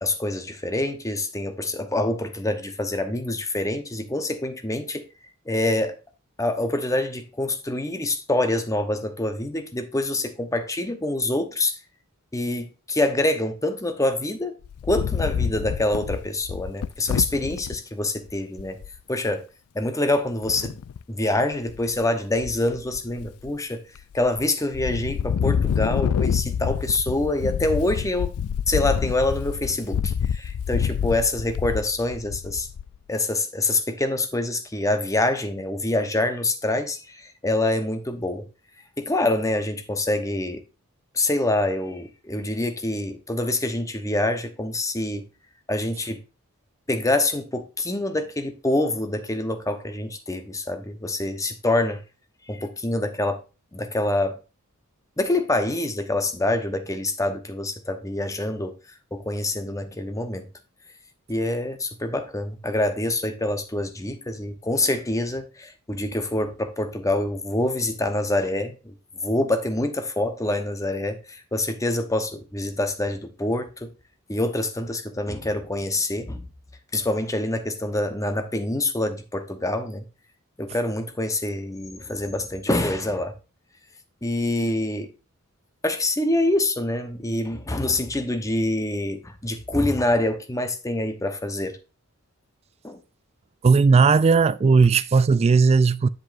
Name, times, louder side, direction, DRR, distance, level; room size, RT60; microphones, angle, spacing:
voice 1, 0.0-5.0 5.5-5.9 6.4-11.7 12.3-14.5 14.8-18.8 19.1-19.4 19.7-20.8 21.1-23.8 24.1-28.3 28.7-32.7 33.1-38.5 39.0-40.6 41.1-45.3 45.7-46.2 46.9-52.0 52.5-53.4 53.7-54.4 55.2-58.7 59.1-60.5 61.3-68.9 69.2-73.9 74.3-76.5 76.9-80.0 80.6-83.3 84.2-85.1 85.8-91.8 92.8-93.0, left 2 dB, 15° left, 0.9 m, -26 dB
Wind, 14.6-17.8 18.3-18.4 18.6-19.0 20.4-21.0 21.5-22.0 22.3-23.5 24.0-24.4 24.7-33.0, left 7 dB, 80° left, 0.3 m, -27 dB
voice 2, 93.6-96.1, right 4 dB, 30° right, 0.3 m, -17 dB
7.9 x 7.5 x 2.5 m
head